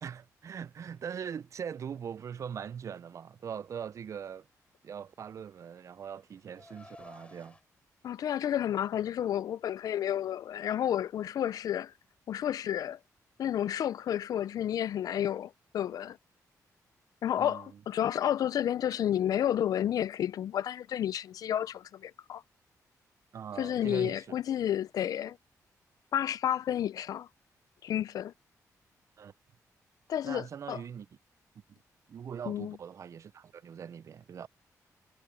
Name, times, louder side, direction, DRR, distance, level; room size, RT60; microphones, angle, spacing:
voice 1, 0.0-4.5 4.8-7.6 17.4-17.8 23.3-24.4 29.2-29.3 30.2-31.1 32.1-34.5, right 7 dB, 55° right, 0.4 m, -41 dB
Car, 5.1-7.6, left 2 dB, 20° left, 5.3 m, -55 dB
voice 2, 8.0-11.9 12.3-13.0 13.4-16.2 17.2-22.4 23.6-25.4 26.1-27.3 27.8-28.3 30.1-30.8 32.5-32.8, left 10 dB, 75° left, 0.4 m, -31 dB
cardioid pair, 105°, 6 cm